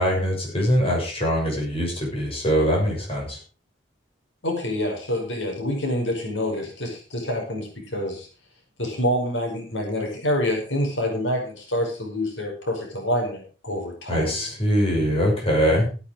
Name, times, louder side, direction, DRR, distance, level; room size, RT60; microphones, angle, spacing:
voice 1, 0.0-3.4 14.1-15.9, equal, 30° left, -1 dB, 6.9 m, -22 dB
voice 2, 4.4-8.3 8.8-14.3, left 1 dB, 85° left, 1 dB, 5.3 m, -27 dB
16.0 x 9.3 x 5.0 m, 0.34 s
head